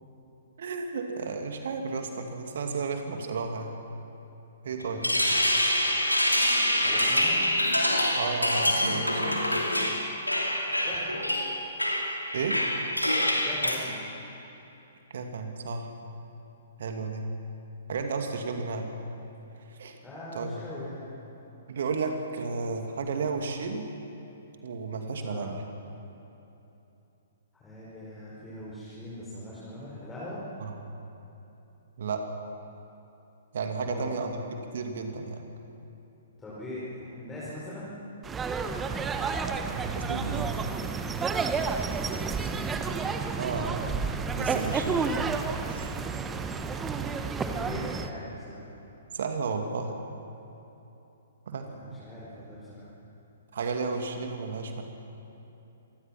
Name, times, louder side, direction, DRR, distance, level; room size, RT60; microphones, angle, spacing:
voice 1, 0.6-3.8 4.6-5.1 8.1-9.4 12.3-12.6 15.1-15.9 16.8-17.3 17.9-18.9 19.8-20.0 20.3-20.7 21.7-23.9 24.6-25.6 30.6-30.7 32.0-32.3 33.5-35.4 39.4-40.6 43.3-44.0 44.4-45.3 45.7-45.9 49.1-50.0 51.5-51.7 53.5-54.8, right 4 dB, 55° right, 4 dB, 2.3 m, -33 dB
voice 2, 4.7-5.1 5.4-5.5 6.8-7.4 10.8-11.1 13.4-14.0 20.0-21.2 25.2-25.5 27.5-30.4 33.8-34.2 36.4-38.0 42.1-42.7 45.9-46.1 47.4-48.7 51.7-52.9, left 1 dB, 10° left, -9 dB, 5.3 m, -41 dB
sound 1, 4.8-13.8, left 1 dB, 85° left, 3.0 m, -26 dB
sound 2, 38.2-48.1, right 5 dB, 15° right, 1.1 m, -30 dB
26.0 x 20.5 x 6.0 m, 3.0 s
figure-of-eight pair, 120°, 0 cm